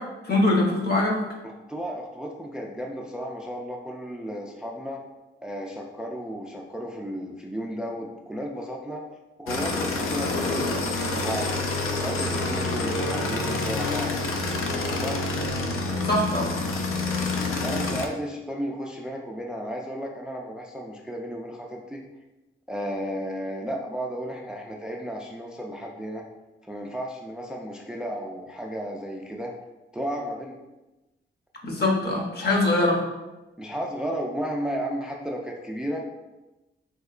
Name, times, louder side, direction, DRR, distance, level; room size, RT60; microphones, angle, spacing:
voice 1, 0.2-1.2 16.0-16.5 31.6-33.0, left 2 dB, 50° left, -1 dB, 0.8 m, -22 dB
voice 2, 1.4-5.0 5.4-9.0 9.4-11.5 12.0-14.1 15.0-15.3 17.6-22.0 22.7-26.2 26.6-29.5 29.9-30.6 33.6-36.1, equal, 5° right, 0 dB, 0.3 m, -33 dB
sound 1, 9.5-18.1, left 2 dB, 85° left, 0.4 m, -27 dB
3.4 x 2.8 x 2.4 m, 1.1 s
cardioid pair, 90°, 21 cm